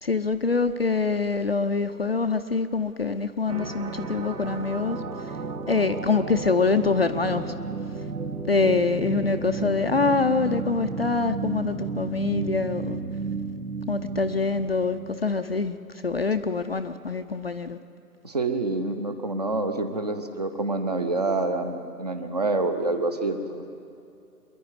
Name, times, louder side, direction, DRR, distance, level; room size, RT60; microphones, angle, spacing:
voice 1, 0.0-5.0 5.7-7.5 8.5-13.0 13.9-15.8 16.0-17.8, left 4 dB, 40° left, 8 dB, 0.6 m, -25 dB
sound 1, 3.5-15.2, right 4 dB, 75° right, 1.8 m, -33 dB
voice 2, 18.2-23.7, right 2 dB, 25° right, 8 dB, 0.8 m, -27 dB
25.0 x 11.0 x 9.6 m, 2.6 s
figure-of-eight pair, 150°, 48 cm